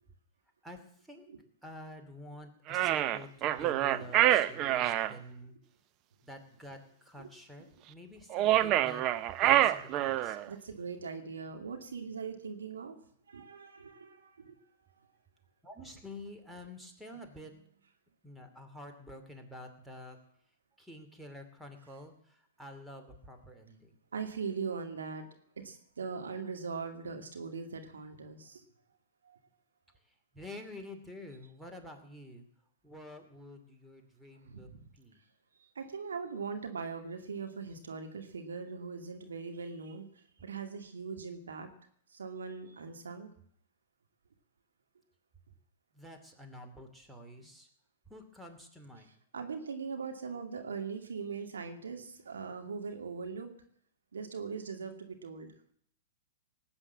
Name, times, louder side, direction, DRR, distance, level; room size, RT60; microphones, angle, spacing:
voice 1, 0.6-1.2 1.6-5.5 6.2-9.0 9.4-10.4 15.6-17.5 18.2-20.2 20.8-23.9 30.1-32.4 32.8-34.7 34.9-35.2 45.9-47.7 48.1-49.1, left 1 dB, 5° right, 4 dB, 2.7 m, -49 dB
sound 1, 2.7-5.1 8.3-10.5, right 13 dB, 35° right, 0.8 m, -26 dB
voice 2, 10.5-13.0 13.3-14.7 15.0-15.1 24.1-25.3 25.6-28.6 29.2-29.4 34.5-34.9 35.8-41.7 42.1-43.3 47.4-47.5 49.3-53.5 54.1-55.5, right 5 dB, 80° right, 5 dB, 2.4 m, -40 dB
18.5 x 8.9 x 7.3 m, 0.64 s
hypercardioid pair, 115°, 0 cm